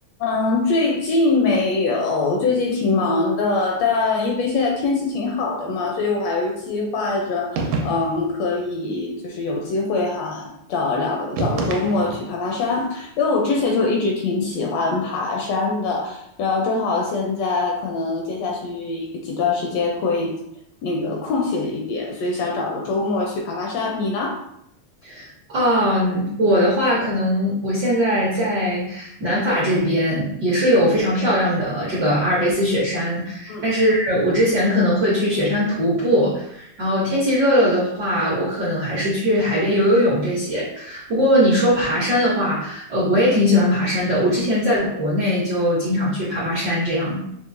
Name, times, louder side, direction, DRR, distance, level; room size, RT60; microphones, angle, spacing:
voice 1, 0.2-20.3 20.8-24.4 33.5-33.7, left 3 dB, 75° left, 0 dB, 1.6 m, -23 dB
sound 1, 7.5-8.3 11.3-12.4, right 3 dB, 85° right, 2.0 m, -27 dB
voice 2, 25.0-47.2, equal, 70° right, -7 dB, 1.0 m, -20 dB
6.7 x 2.4 x 2.5 m, 0.76 s
omnidirectional pair, 3.3 m